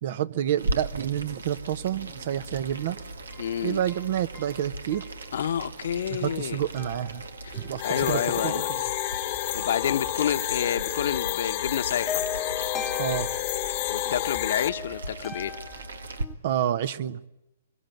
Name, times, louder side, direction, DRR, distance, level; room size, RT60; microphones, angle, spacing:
voice 1, 0.0-3.0 3.6-5.0 6.1-7.2 7.6-8.8 13.0-13.3 16.4-17.2, right 11 dB, 55° right, 15 dB, 1.1 m, -29 dB
Boiling, 0.6-16.2, right 2 dB, 85° right, 1.9 m, -38 dB
sound 1, 1.8-16.4, left 6 dB, 15° left, 1.1 m, -42 dB
voice 2, 3.4-3.8 5.3-6.6 7.4-8.7 9.5-12.2 13.9-15.6, left 9 dB, 65° left, 10 dB, 1.3 m, -29 dB
sound 2, 7.8-14.7, left 16 dB, 45° left, 1.2 m, -30 dB
25.0 x 23.0 x 9.4 m, 0.90 s
hypercardioid pair, 135°, 0 cm